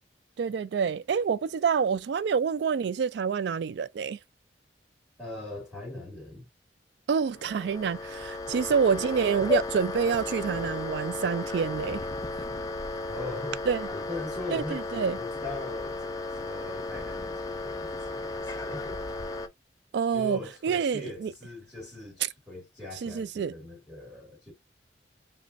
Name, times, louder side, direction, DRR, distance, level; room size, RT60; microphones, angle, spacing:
voice 1, 0.4-4.2 7.1-12.0 12.3-12.4 13.7-13.9 14.5-15.2 19.9-21.3 23.0-23.5, right 6 dB, 60° right, 0.3 m, -27 dB
voice 2, 5.2-6.5 13.1-13.6 13.9-19.2 20.1-24.5, left 2 dB, 5° right, 2.1 m, -40 dB
sound 1, 7.3-19.5, left 3 dB, 20° left, 0.4 m, -34 dB
5.0 x 2.1 x 2.6 m
head